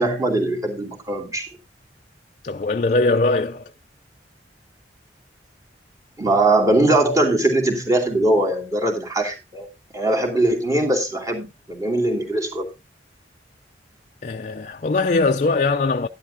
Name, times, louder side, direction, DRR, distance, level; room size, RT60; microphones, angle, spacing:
voice 1, 0.0-1.5 6.2-9.7 9.9-12.7, right 2 dB, 20° right, 2.7 m, -21 dB
voice 2, 2.4-3.6 14.2-16.1, left 3 dB, 45° left, 0.4 m, -21 dB
11.0 x 11.0 x 2.7 m
head